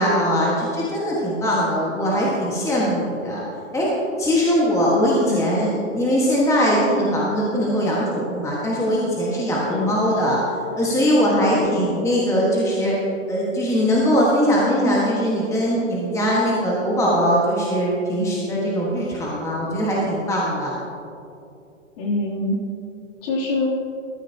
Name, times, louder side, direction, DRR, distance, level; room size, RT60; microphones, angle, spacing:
voice 1, 0.0-3.4 3.7-3.9 4.2-10.4 10.8-12.9 13.3-20.8, equal, 5° left, -5 dB, 1.5 m, -21 dB
voice 2, 11.5-12.0 22.0-22.6 23.2-23.7, left 2 dB, 45° left, -4 dB, 3.0 m, -25 dB
14.5 x 12.5 x 2.8 m, 2.5 s
hypercardioid pair, 130°, 39 cm